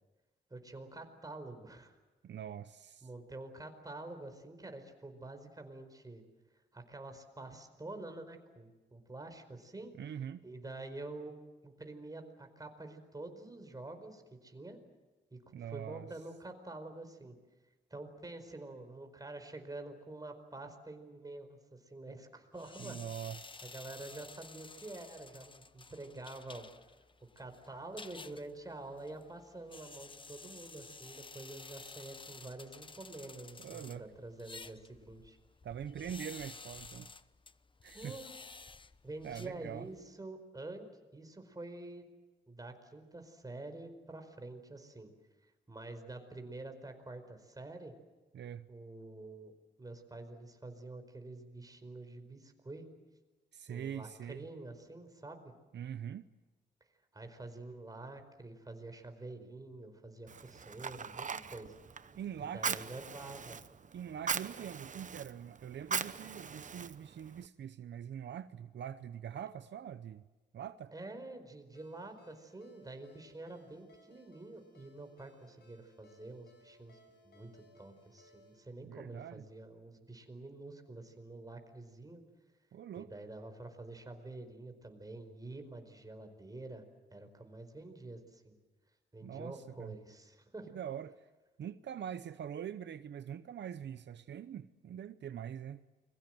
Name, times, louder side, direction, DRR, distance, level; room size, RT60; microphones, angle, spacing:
voice 1, 0.5-1.9 3.0-6.2 6.7-9.9 10.4-14.8 15.3-17.4 17.9-23.0 23.6-26.7 27.3-35.4 37.9-38.3 39.0-40.9 41.1-42.0 42.5-45.1 45.7-47.9 48.7-49.5 49.8-52.8 53.7-55.5 57.1-61.7 62.5-63.6 70.9-77.0 77.2-82.2 83.0-86.8 87.1-88.5 89.1-90.8, right 2 dB, 20° right, 4.8 m, -47 dB
voice 2, 2.2-3.1 9.9-10.4 15.5-16.1 22.8-23.6 33.6-34.1 35.6-37.1 37.8-38.2 39.2-39.9 48.3-48.7 53.5-54.5 55.7-56.3 62.2-62.8 63.9-70.2 70.5-70.9 78.8-79.4 82.7-83.1 89.2-90.0 90.7-91.2 91.6-95.8, right 9 dB, 75° right, 0.8 m, -43 dB
sound 1, 22.6-40.1, left 4 dB, 25° left, 0.9 m, -53 dB
Fire, 60.3-67.5, right 6 dB, 45° right, 1.0 m, -41 dB
Ringtone, 71.7-78.6, equal, 65° left, 7.4 m, -64 dB
29.5 x 22.5 x 7.8 m
cardioid pair, 95°, 18 cm